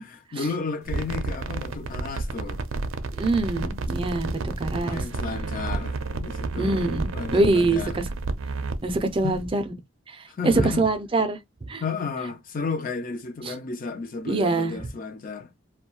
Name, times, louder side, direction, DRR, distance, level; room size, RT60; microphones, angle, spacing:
voice 1, 0.0-2.6 4.8-6.8 7.1-8.0 9.2-9.4 10.3-10.8 11.8-15.5, left 4 dB, 45° left, 0.4 m, -33 dB
sound 1, 0.8-9.4, right 3 dB, 85° right, 0.5 m, -31 dB
voice 2, 3.2-5.0 6.5-8.0 8.8-9.7 10.1-11.4 11.7-11.8 13.4-13.5 14.3-14.8, right 2 dB, 25° right, 0.4 m, -24 dB
2.6 x 2.3 x 2.8 m
head